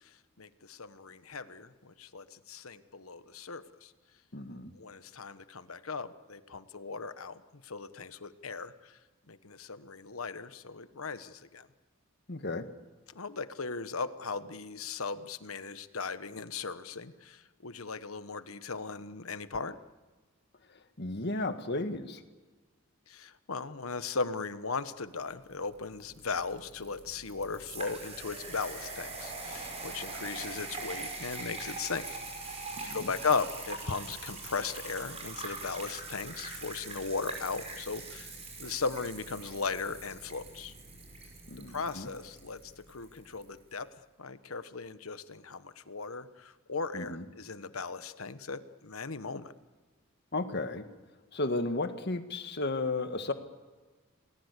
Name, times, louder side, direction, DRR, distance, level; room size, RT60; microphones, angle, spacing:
voice 1, 0.0-3.9 4.8-9.0 9.3-11.7 13.1-19.8 23.1-32.1 32.4-32.6 32.9-38.3 38.6-40.7 41.7-43.9 44.2-49.5, left 4 dB, 85° left, 12 dB, 1.2 m, -37 dB
voice 2, 4.3-4.7 12.3-12.7 21.0-22.2 32.8-33.1 41.5-42.1 46.9-47.2 50.3-50.8 51.3-53.3, left 2 dB, 50° left, 8 dB, 1.8 m, -34 dB
sound 1, 25.5-43.5, right 3 dB, 30° right, 6.1 m, -43 dB
28.5 x 20.0 x 8.3 m, 1.3 s
head